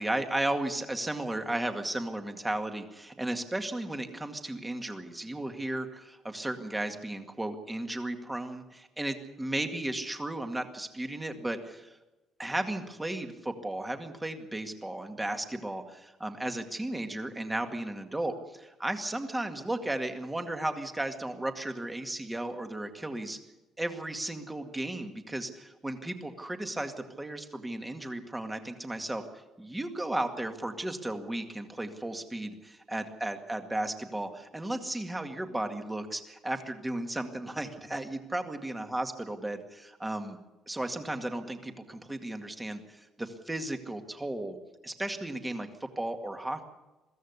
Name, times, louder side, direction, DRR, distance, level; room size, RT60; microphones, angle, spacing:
voice 1, 0.0-12.0 12.4-23.4 23.8-29.2 29.6-40.4 40.7-44.6 44.8-46.7, right 1 dB, 10° right, 6 dB, 2.1 m, -35 dB
22.0 x 16.0 x 8.2 m, 1.1 s
cardioid pair, 140°, 0 cm